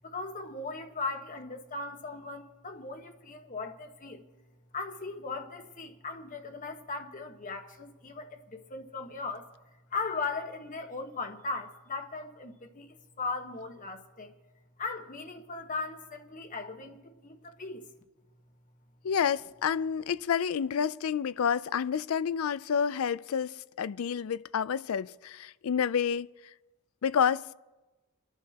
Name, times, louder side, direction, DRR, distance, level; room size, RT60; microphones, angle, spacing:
voice 1, 0.0-4.2 4.7-9.5 9.9-14.3 14.8-17.8, left 3 dB, 40° left, 1.2 m, -38 dB
voice 2, 19.0-26.3 27.0-27.5, left 7 dB, 75° left, 0.4 m, -29 dB
29.5 x 11.5 x 2.9 m
head